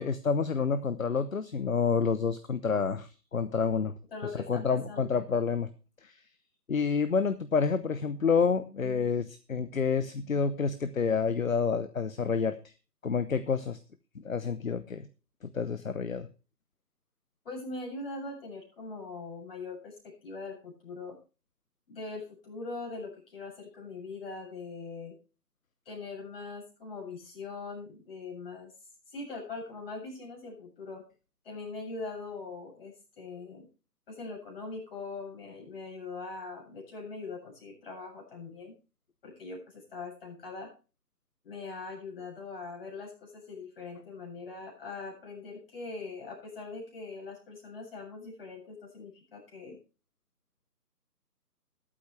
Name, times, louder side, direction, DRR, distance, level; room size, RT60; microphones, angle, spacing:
voice 1, 0.0-3.9 4.5-5.7 6.0-6.2 6.7-12.6 13.0-13.8 14.1-15.1 15.4-16.3, left 5 dB, 55° left, 12 dB, 0.9 m, -28 dB
voice 2, 4.1-5.2 17.4-19.9 20.2-21.2 21.9-25.1 25.9-28.7 29.1-31.0 31.4-33.7 34.1-38.7 39.2-40.7 41.4-49.8, left 3 dB, 35° left, -2 dB, 7.6 m, -41 dB
21.0 x 8.7 x 3.3 m, 0.33 s
figure-of-eight pair, 155°, 49 cm